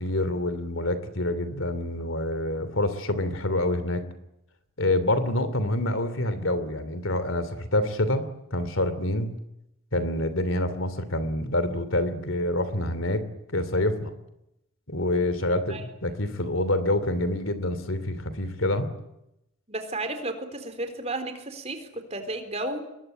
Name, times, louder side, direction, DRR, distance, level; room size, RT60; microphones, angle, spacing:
voice 1, 0.0-4.0 4.8-9.3 9.9-13.2 13.5-14.1 14.9-18.9, left 1 dB, 70° left, 13 dB, 2.9 m, -27 dB
voice 2, 19.7-22.8, right 2 dB, 30° right, 7 dB, 3.9 m, -33 dB
26.0 x 21.5 x 8.9 m, 0.85 s
head